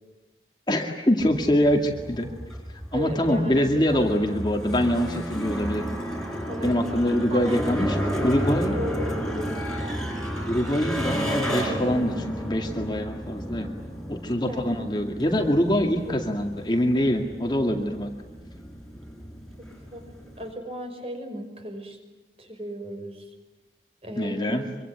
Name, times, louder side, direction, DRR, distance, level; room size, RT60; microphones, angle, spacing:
voice 1, 0.7-2.3 2.9-6.0 6.6-8.0 8.2-8.8 10.5-13.7 14.1-18.1 24.2-24.6, equal, 25° left, 3 dB, 2.2 m, -24 dB
sound 1, 1.2-20.5, equal, 5° left, 4.6 m, -32 dB
voice 2, 2.9-4.4 6.5-6.9 7.3-7.6 8.0-9.8 14.5-14.7 16.1-16.2 19.6-20.0 20.4-22.0 22.4-23.3 24.0-24.8, equal, 35° right, 5 dB, 5.7 m, -36 dB
25.5 x 24.5 x 9.3 m, 1.1 s
head